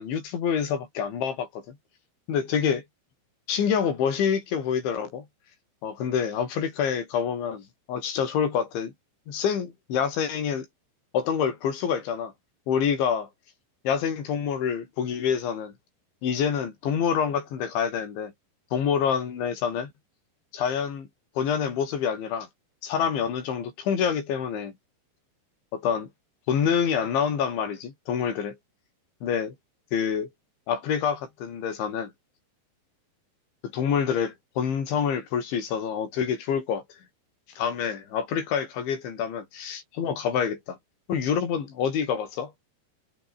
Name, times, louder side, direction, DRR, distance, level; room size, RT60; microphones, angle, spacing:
voice 1, 0.0-1.8 2.3-2.8 3.5-5.3 5.8-8.9 9.3-10.7 11.1-12.3 12.7-13.3 13.8-15.7 16.2-18.3 18.7-19.9 20.5-21.1 21.4-22.5 22.8-24.7 25.7-26.1 26.5-28.6 29.2-29.5 29.9-30.3 30.7-32.1 33.7-36.8 37.6-40.8 41.1-42.5, left 7 dB, 90° left, 6.7 m, -27 dB
omnidirectional pair, 5.2 m